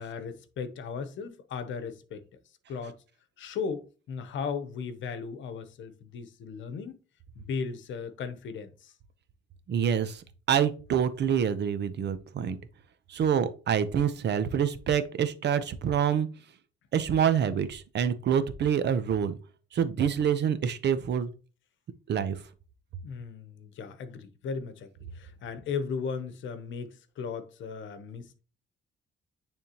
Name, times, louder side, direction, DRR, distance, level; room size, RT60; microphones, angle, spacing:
voice 1, 0.0-2.2 2.7-3.0 3.4-7.0 7.3-8.9 23.0-28.4, left 5 dB, 70° left, 1.0 m, -36 dB
voice 2, 9.7-12.6 13.1-16.3 16.9-19.4 19.7-21.3 22.1-22.4, right 8 dB, 60° right, 0.8 m, -26 dB
9.4 x 3.5 x 3.0 m
cardioid pair, 90°, 20 cm